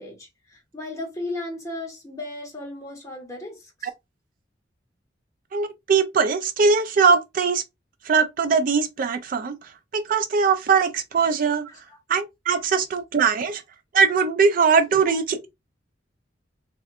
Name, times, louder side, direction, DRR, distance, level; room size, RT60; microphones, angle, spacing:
voice 1, 0.0-3.9 11.6-12.0, left 2 dB, 15° left, 1.1 m, -35 dB
voice 2, 5.5-7.6 8.0-11.7 12.1-13.6 13.9-15.5, right 5 dB, 45° right, 0.3 m, -21 dB
3.5 x 2.5 x 2.4 m
head